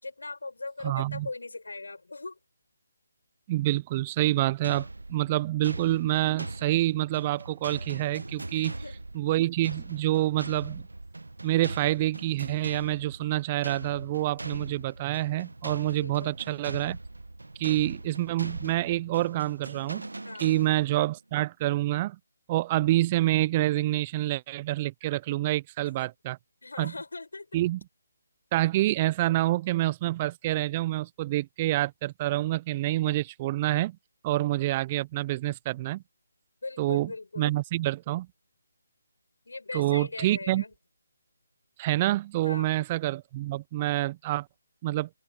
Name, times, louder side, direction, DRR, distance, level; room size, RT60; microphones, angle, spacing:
voice 1, 0.0-2.4 8.5-9.0 16.0-16.4 20.2-20.6 25.8-26.1 26.6-27.6 36.6-37.6 39.4-40.7 42.4-42.7, left 3 dB, 80° left, 7.4 m, -40 dB
voice 2, 0.8-1.3 3.5-8.7 9.1-10.8 11.4-17.0 17.6-20.1 20.4-22.2 22.5-26.4 26.8-26.9 27.5-27.8 28.5-34.0 34.2-36.0 36.8-37.1 37.4-38.3 39.7-40.6 41.8-44.5 44.8-45.1, right 16 dB, 25° right, 0.3 m, -27 dB
sound 1, 4.6-21.1, right 2 dB, 90° right, 1.0 m, -40 dB
open air
figure-of-eight pair, 155°, 0 cm